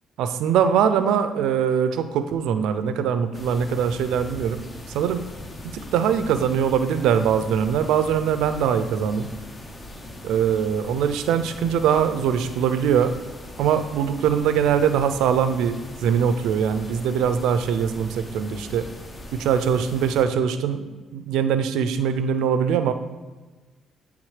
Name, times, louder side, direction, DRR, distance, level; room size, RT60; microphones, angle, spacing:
voice 1, 0.2-4.6 4.9-5.2 5.7-9.3 10.2-13.1 13.6-18.9 19.3-22.9, right 8 dB, 90° right, 10 dB, 0.3 m, -22 dB
sound 1, 3.3-20.2, left 1 dB, 30° left, 0.7 m, -40 dB
8.8 x 3.5 x 3.2 m, 1.3 s
cardioid pair, 90°, 0 cm